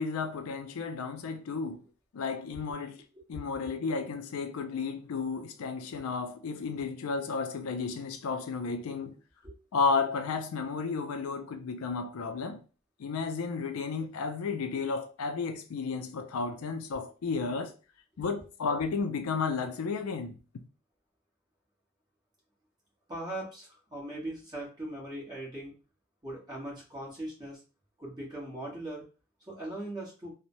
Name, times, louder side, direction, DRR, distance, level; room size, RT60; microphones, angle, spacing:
voice 1, 0.0-1.8 2.1-3.0 3.3-9.2 9.7-12.6 13.0-17.7 18.2-20.4, left 4 dB, 80° left, 0.4 m, -33 dB
voice 2, 23.1-25.7 26.2-27.6 28.0-29.0 29.5-30.3, right 1 dB, 20° right, 1.1 m, -39 dB
3.0 x 2.0 x 2.6 m
head